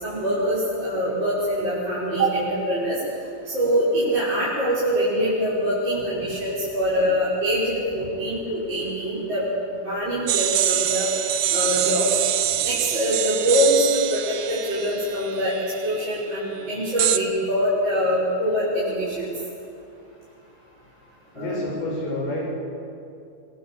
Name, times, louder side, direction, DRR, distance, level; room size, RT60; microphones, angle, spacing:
voice 1, 0.0-3.0 3.4-9.4 9.8-11.1 11.5-12.1 12.6-15.5 15.8-19.3 21.3-21.6, equal, 30° right, -8 dB, 6.8 m, -24 dB
sound 1, 10.3-16.0 17.0-17.2, right 12 dB, 90° right, 1.5 m, -25 dB
voice 2, 21.3-22.5, left 1 dB, 80° left, -3 dB, 9.1 m, -28 dB
26.5 x 24.5 x 8.1 m, 2.6 s
omnidirectional pair, 4.4 m